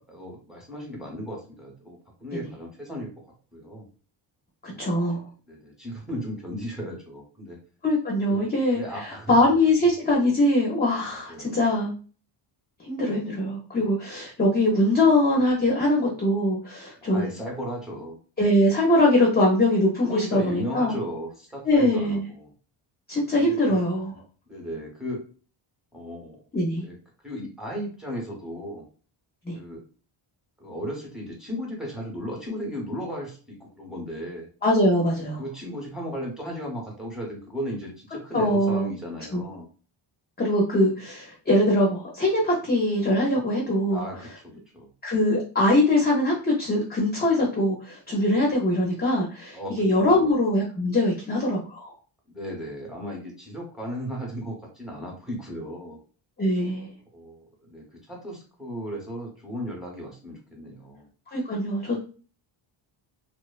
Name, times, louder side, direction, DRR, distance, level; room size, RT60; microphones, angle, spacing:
voice 1, 0.1-3.1 3.5-3.9 4.7-5.0 5.5-7.6 8.3-8.5 8.7-9.4 11.1-11.6 17.0-18.2 20.0-22.5 23.4-23.8 24.5-25.2 25.9-26.4 26.8-27.0 27.2-28.8 29.5-29.8 30.6-34.5 35.4-39.7 43.9-44.9 49.5-50.3 52.3-56.0 57.1-61.1, equal, ahead, -2 dB, 0.8 m, -36 dB
voice 2, 4.6-5.2 7.8-8.8 9.3-11.9 12.8-17.3 18.4-21.0 21.6-22.3 23.1-24.1 26.5-26.9 29.5-29.6 34.6-35.4 38.3-38.9 39.3-39.4 40.4-44.0 45.0-51.9 56.4-56.9 61.3-62.0, left 1 dB, 20° left, -2 dB, 0.4 m, -22 dB
2.8 x 2.0 x 2.3 m, 0.38 s
wide cardioid pair, 150°, 48 cm